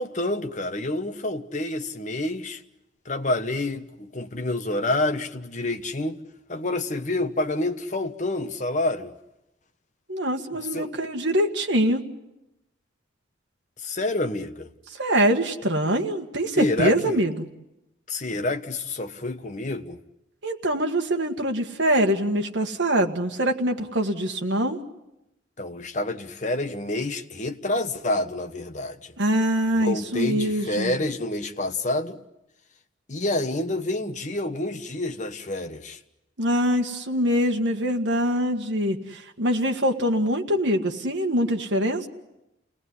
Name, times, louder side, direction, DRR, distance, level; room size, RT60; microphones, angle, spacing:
voice 1, 0.0-2.6 3.0-6.2 6.5-9.1 10.5-10.9 13.8-14.7 16.6-17.2 18.1-20.0 25.6-29.1 29.7-32.2 33.1-36.0, left 2 dB, 40° left, 1.2 m, -28 dB
voice 2, 10.1-12.0 15.0-17.5 20.4-24.8 29.2-31.0 36.4-42.1, equal, 70° right, 1.8 m, -24 dB
29.0 x 19.0 x 9.8 m
head